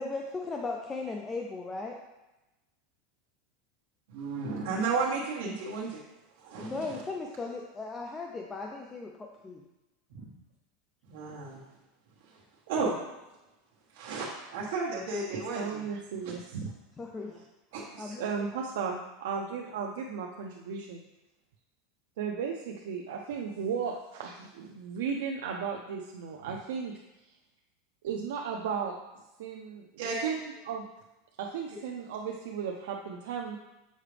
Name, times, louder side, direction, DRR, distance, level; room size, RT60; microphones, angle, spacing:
voice 1, 0.0-2.0 6.6-9.6 17.0-17.4 18.0-18.2, left 3 dB, 10° left, 1 dB, 0.4 m, -37 dB
voice 2, 4.1-6.0 6.4-6.9 10.1-10.3 11.1-11.7 12.7-13.0 13.9-15.9 16.2-16.3 17.7-17.8 30.0-30.3, right 4 dB, 60° right, -5 dB, 1.2 m, -33 dB
voice 3, 15.6-16.7 17.9-21.0 22.2-27.0 28.0-29.0 29.4-29.9 30.2-30.9 31.4-33.6, right 6 dB, 75° right, 0 dB, 0.6 m, -35 dB
6.4 x 4.9 x 3.3 m, 1.0 s
supercardioid pair, 175°, 0 cm